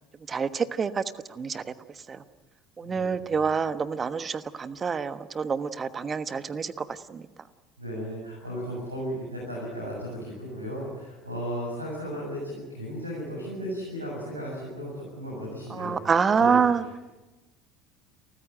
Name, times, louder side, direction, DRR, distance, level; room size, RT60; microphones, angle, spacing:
voice 1, 0.3-1.0 1.3-1.6 2.1-2.2 2.8-7.3 15.7-16.8, right 6 dB, 30° right, 13 dB, 1.3 m, -27 dB
voice 2, 2.8-3.3 7.8-15.9 16.4-16.6, equal, 90° right, -5 dB, 7.6 m, -35 dB
30.0 x 14.5 x 9.1 m, 1.1 s
figure-of-eight pair, 65°, 0 cm